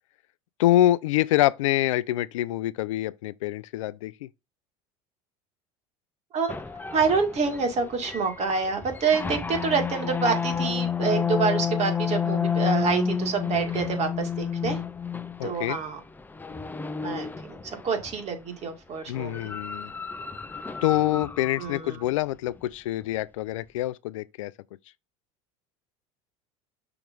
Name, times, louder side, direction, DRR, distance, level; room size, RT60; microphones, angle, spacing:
voice 1, 0.6-4.3 15.4-15.8 19.1-19.9 20.8-24.5, left 15 dB, 85° left, 0.4 m, -25 dB
voice 2, 6.3-6.6 6.9-14.8 15.4-16.0 17.0-19.4 21.6-22.0, right 5 dB, 45° right, 2.1 m, -27 dB
sound 1, 6.5-18.3 19.1-21.8, left 6 dB, 10° left, 0.6 m, -30 dB
5.9 x 3.0 x 5.2 m
hypercardioid pair, 90°, 16 cm